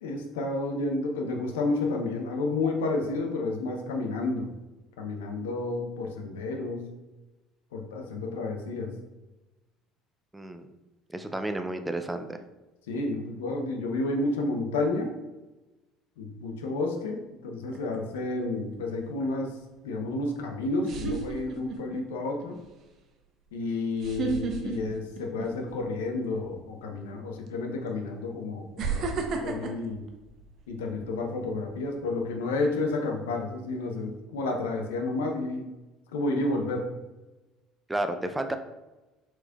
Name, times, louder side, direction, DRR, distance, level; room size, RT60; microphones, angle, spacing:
voice 1, 0.0-4.5 5.0-6.9 7.7-8.9 12.9-15.2 16.2-19.6 19.8-22.6 23.5-30.0 30.7-35.7 36.1-36.9, left 2 dB, 75° left, 3 dB, 0.6 m, -31 dB
voice 2, 10.3-10.7 11.1-12.4 37.9-38.6, right 1 dB, 10° right, 7 dB, 0.4 m, -31 dB
sound 1, 17.7-18.2 20.1-20.2 20.8-22.0 22.4-22.7 24.0-25.8 26.2-26.5 27.5-27.6 28.8-31.0 31.5-31.8, right 4 dB, 50° right, 0.6 m, -32 dB
4.4 x 4.2 x 2.3 m, 1.1 s
hypercardioid pair, 60°, 0 cm